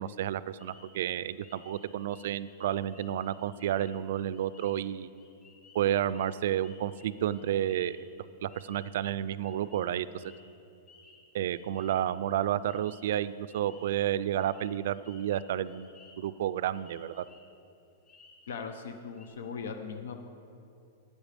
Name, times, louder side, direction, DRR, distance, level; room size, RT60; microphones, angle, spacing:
voice 1, 0.0-5.1 5.7-8.0 8.4-10.2 11.3-17.2, right 11 dB, 60° right, 16 dB, 0.3 m, -31 dB
sound 1, 0.6-12.3 12.7-14.0 14.4-16.4 16.7-17.6 18.1-18.7 19.0-19.3, left 3 dB, 20° left, 1.5 m, -58 dB
voice 2, 18.5-20.3, left 5 dB, 85° left, 6 dB, 0.9 m, -39 dB
12.5 x 8.7 x 5.2 m, 2.5 s
supercardioid pair, 165°, 0 cm